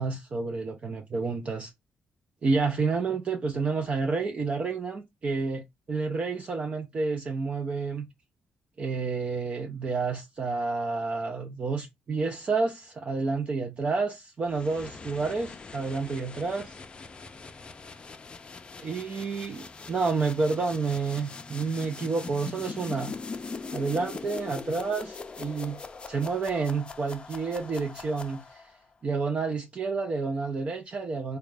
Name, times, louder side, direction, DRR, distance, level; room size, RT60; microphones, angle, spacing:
voice 1, 0.0-1.7 2.4-8.1 8.8-16.8 18.8-23.1 23.7-25.8 26.1-28.7 29.0-31.4, right 4 dB, 40° right, 0.5 m, -29 dB
sound 1, 14.5-28.8, left 4 dB, 30° left, 0.4 m, -42 dB
3.7 x 2.3 x 3.3 m
cardioid pair, 105°, 3 cm